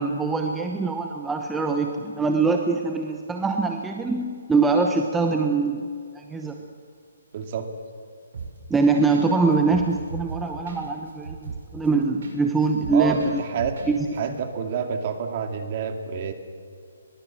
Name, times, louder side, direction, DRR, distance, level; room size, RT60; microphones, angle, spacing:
voice 1, 0.0-5.8 6.1-6.6 8.7-13.4 13.9-14.0, right 4 dB, 5° right, 3 dB, 0.9 m, -23 dB
voice 2, 7.3-7.7 12.9-13.7 14.2-16.3, right 7 dB, 35° right, 6 dB, 2.4 m, -28 dB
sound 1, 8.3-8.8 9.1-9.3 9.5-12.4 12.6-13.9 14.1-14.2, right 4 dB, 60° right, 7.4 m, -36 dB
23.0 x 21.5 x 7.6 m, 2.3 s
hypercardioid pair, 170°, 0 cm